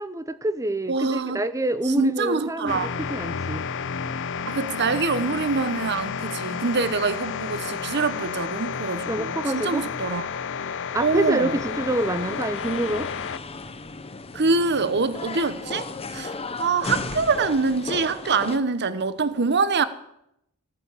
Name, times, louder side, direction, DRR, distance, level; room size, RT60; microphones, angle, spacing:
voice 1, 0.0-2.8 3.1-3.7 9.1-9.8 10.9-13.1, right 1 dB, 15° right, 0.8 m, -26 dB
voice 2, 0.9-1.4 1.8-2.9 4.5-10.2 11.0-11.6 14.3-19.9, right 4 dB, 50° right, 1.0 m, -25 dB
sound 1, 2.7-13.4, left 6 dB, 55° left, 0.6 m, -31 dB
sound 2, 11.5-18.6, left 3 dB, 25° left, 0.9 m, -35 dB
16.5 x 9.7 x 8.3 m
head